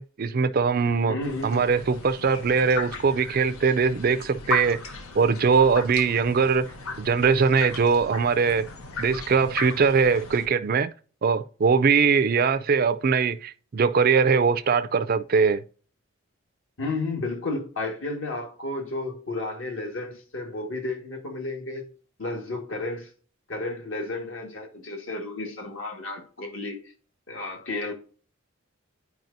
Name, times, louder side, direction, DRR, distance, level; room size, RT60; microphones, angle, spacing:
voice 1, 0.0-1.2 1.4-4.8 5.2-6.7 7.0-8.7 9.0-10.9 11.2-15.6, right 5 dB, 45° right, 0.4 m, -21 dB
voice 2, 1.1-1.7 16.8-21.9 22.2-23.1 23.5-26.8 27.3-27.9, left 2 dB, 65° left, 1.7 m, -32 dB
sound 1, 1.2-10.5, left 3 dB, 85° left, 0.8 m, -37 dB
9.2 x 4.7 x 2.6 m
head